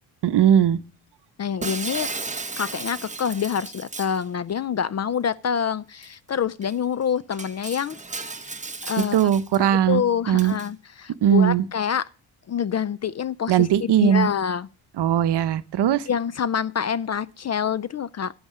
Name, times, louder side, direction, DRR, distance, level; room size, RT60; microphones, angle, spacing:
voice 1, 0.2-0.8 9.1-10.5 11.2-11.6 13.5-14.3 15.0-16.1, right 10 dB, 55° right, 0.8 m, -19 dB
voice 2, 1.4-2.1 2.6-8.0 8.8-9.2 9.6-12.1 12.5-14.7 16.1-18.3, left 8 dB, 35° left, 0.4 m, -26 dB
Shatter, 1.6-4.2 6.0-6.1 6.6-6.7 7.3-9.6 10.4-10.7, right 3 dB, 15° right, 1.0 m, -34 dB
11.5 x 7.9 x 4.9 m
supercardioid pair, 60°, 49 cm